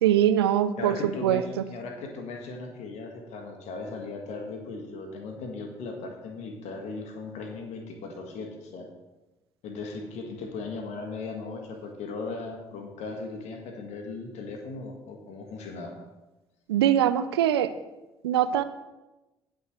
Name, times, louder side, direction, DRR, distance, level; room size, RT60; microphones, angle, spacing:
voice 1, 0.0-1.4 16.7-17.7 18.2-18.6, right 11 dB, 80° right, 12 dB, 0.5 m, -22 dB
voice 2, 0.8-8.9 9.6-16.0, left 3 dB, 60° left, 3 dB, 1.7 m, -37 dB
18.5 x 6.3 x 3.2 m, 1.0 s
figure-of-eight pair, 45°, 13 cm